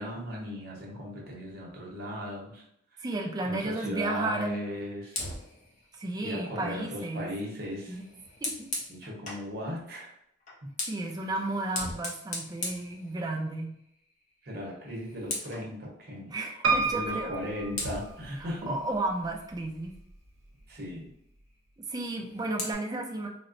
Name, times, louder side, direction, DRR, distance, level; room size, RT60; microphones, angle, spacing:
voice 1, 0.0-2.6 2.9-3.0 3.4-5.2 6.2-8.0 8.9-10.1 10.6-10.7 14.4-16.3 16.8-18.8 20.7-21.1, equal, 55° right, -2 dB, 0.9 m, -37 dB
voice 2, 3.0-4.6 6.0-7.3 7.9-8.1 8.4-8.7 10.9-13.8 16.3-17.3 18.7-20.0 21.9-23.3, right 2 dB, 20° right, 1 dB, 0.4 m, -33 dB
Fire, 5.1-9.5 10.4-13.7 14.0-14.3 14.6-15.7 17.1-17.2 17.7-20.1 22.0-22.7, left 2 dB, 40° left, 0.8 m, -40 dB
Piano, 16.6-18.6 19.2-20.0 20.3-20.4 20.6-20.7, right 4 dB, 85° right, 0.5 m, -30 dB
4.1 x 2.1 x 2.5 m, 0.74 s
head